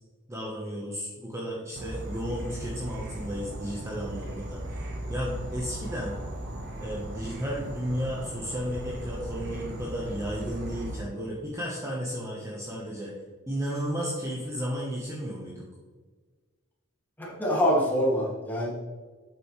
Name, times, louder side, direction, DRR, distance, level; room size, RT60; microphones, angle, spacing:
voice 1, 0.3-4.8 5.1-6.2 6.8-13.1 13.5-15.6, equal, 15° right, -4 dB, 1.1 m, -33 dB
Insect / Frog, 1.8-11.0, right 1 dB, 50° right, 1.2 m, -37 dB
voice 2, 17.2-18.7, equal, 10° left, -6 dB, 2.2 m, -25 dB
8.1 x 6.0 x 3.2 m, 1.4 s
head